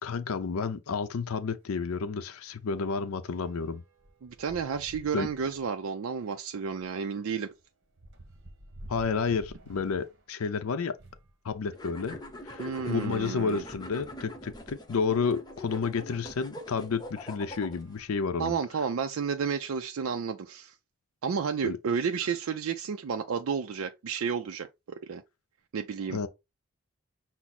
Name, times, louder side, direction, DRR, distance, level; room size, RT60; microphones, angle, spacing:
voice 1, 0.0-3.8 5.1-5.3 8.9-11.0 11.4-12.2 12.4-18.6 21.6-21.8 26.1-26.3, left 5 dB, 85° left, 0.5 m, -31 dB
sound 1, 1.0-1.1 1.4-1.5 1.9-11.3 12.1-13.4 14.1-14.2 14.4-14.5 16.2-16.4 17.0-17.2 17.6-18.9, right 1 dB, 55° right, 1.0 m, -53 dB
voice 2, 4.2-7.5 12.6-13.6 18.4-20.7 21.2-24.7 25.0-25.2 25.7-26.2, right 6 dB, 75° right, 0.4 m, -31 dB
sound 2, 11.7-18.0, left 1 dB, 20° left, 0.6 m, -43 dB
5.9 x 2.0 x 4.1 m
head